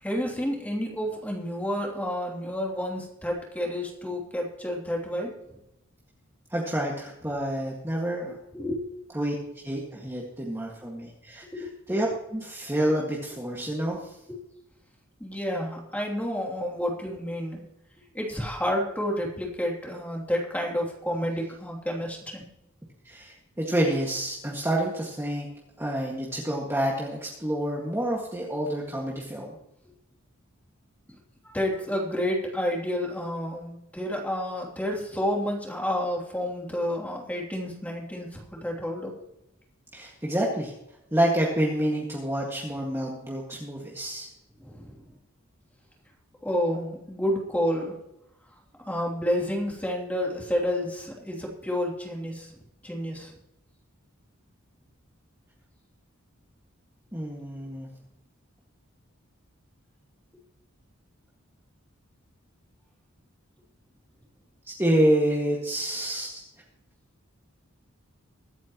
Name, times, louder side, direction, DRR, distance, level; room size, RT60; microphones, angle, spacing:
voice 1, 0.0-5.3 8.5-8.8 11.5-11.7 14.3-14.4 15.2-17.6 18.1-22.4 31.5-39.2 44.6-45.0 46.4-48.0 48.9-52.5 52.8-53.3, equal, 5° left, -1 dB, 3.0 m, -30 dB
voice 2, 6.5-8.4 9.1-9.4 9.6-14.2 23.0-25.5 25.8-29.6 39.9-40.7 41.1-44.3 57.1-57.9 64.8-66.4, right 1 dB, 10° right, -3 dB, 1.9 m, -28 dB
23.5 x 9.2 x 3.1 m, 0.86 s
head